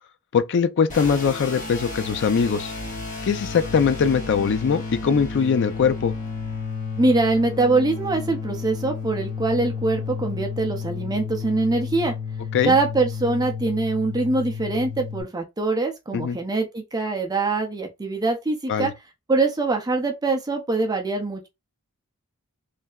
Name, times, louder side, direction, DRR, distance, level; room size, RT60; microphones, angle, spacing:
voice 1, 0.3-2.7 3.2-6.1 12.5-12.8 16.1-16.4 18.7-18.9, left 6 dB, 55° left, 0.4 m, -21 dB
sound 1, 0.9-15.2, left 5 dB, 35° left, 1.3 m, -32 dB
voice 2, 7.0-12.1 12.6-18.9 19.3-21.5, right 3 dB, 15° right, 0.5 m, -23 dB
3.2 x 2.7 x 2.3 m
head